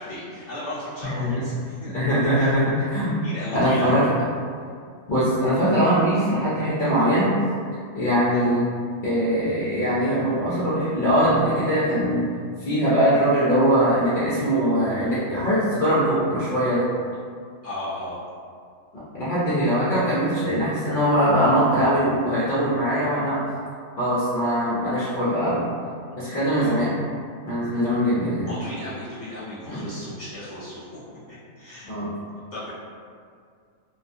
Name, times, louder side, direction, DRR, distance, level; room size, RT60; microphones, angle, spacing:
voice 1, 0.0-1.8 2.3-2.5 3.2-4.1 8.3-8.5 17.6-18.2 26.4-26.9 28.5-32.0 32.5-32.7, left 1 dB, 25° left, -12 dB, 0.9 m, -36 dB
voice 2, 1.9-3.2 3.5-4.1 5.1-7.3 7.9-8.7 9.0-12.2 12.6-16.9 19.1-23.4 24.0-25.7 26.2-26.9 27.4-28.5 29.7-29.9 31.8-32.1, equal, 60° left, -10 dB, 0.5 m, -21 dB
2.3 x 2.2 x 2.5 m, 2.2 s
omnidirectional pair, 1.5 m